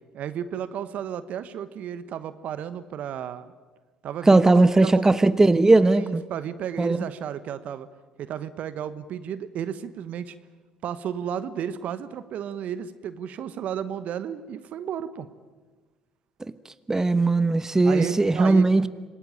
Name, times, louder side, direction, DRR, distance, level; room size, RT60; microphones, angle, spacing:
voice 1, 0.1-3.5 4.0-5.1 5.9-7.9 8.2-10.3 10.8-15.3 17.8-18.7, right 9 dB, 55° right, 1.1 m, -33 dB
voice 2, 4.3-6.2 6.8-7.1 16.9-18.9, right 2 dB, 20° right, 1.1 m, -18 dB
26.5 x 19.0 x 9.0 m
hypercardioid pair, 55°, 3 cm